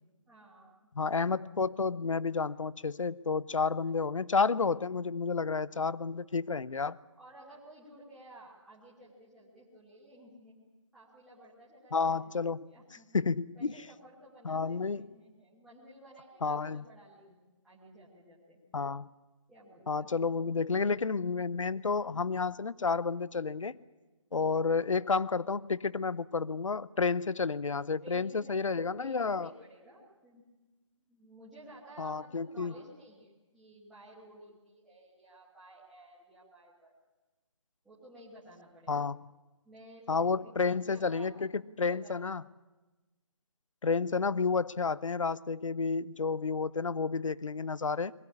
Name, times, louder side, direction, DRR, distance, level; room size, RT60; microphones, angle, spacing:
voice 1, 0.3-0.8 3.8-3.9 7.2-10.6 10.9-12.2 12.6-13.1 13.5-18.6 19.5-20.2 28.0-30.4 31.1-36.9 37.8-39.1 39.6-41.3 41.6-42.3, right 1 dB, ahead, -11 dB, 1.3 m, -54 dB
voice 2, 1.0-7.0 11.9-12.7 13.1-13.7 14.4-15.0 16.4-16.8 18.7-19.1 19.9-23.8 24.3-29.5 32.0-32.7 38.9-39.2 40.1-42.4 43.8-48.1, left 4 dB, 75° left, 20 dB, 0.7 m, -31 dB
22.0 x 16.0 x 9.8 m, 1.2 s
figure-of-eight pair, 175°, 16 cm